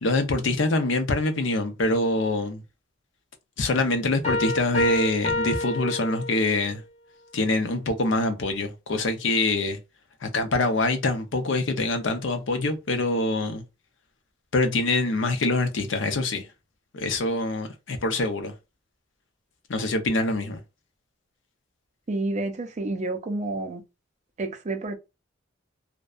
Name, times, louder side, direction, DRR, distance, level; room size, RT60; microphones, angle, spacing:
voice 1, 0.0-2.6 3.6-6.8 7.3-9.8 10.2-13.6 14.5-16.5 16.9-18.5 19.7-20.6, left 2 dB, 70° left, 0.6 m, -25 dB
sound 1, 4.2-6.7, left 2 dB, 35° left, 0.7 m, -29 dB
voice 2, 22.1-23.8 24.4-25.0, right 2 dB, 35° right, 0.5 m, -29 dB
2.6 x 2.1 x 2.3 m
head